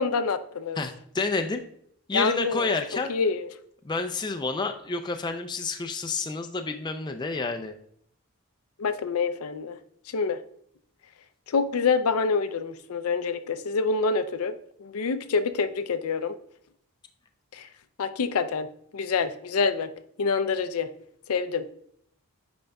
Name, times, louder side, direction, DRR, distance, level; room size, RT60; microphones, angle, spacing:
voice 1, 0.0-0.8 2.1-3.5 8.8-9.8 10.1-10.4 11.5-14.6 14.8-16.3 17.5-17.7 18.0-18.7 18.9-19.9 20.2-20.9 21.3-21.6, left 4 dB, 75° left, 11 dB, 0.5 m, -26 dB
voice 2, 0.8-1.6 2.1-3.1 3.8-7.7, left 3 dB, 20° left, 5 dB, 0.4 m, -29 dB
8.8 x 5.2 x 2.3 m, 0.67 s
head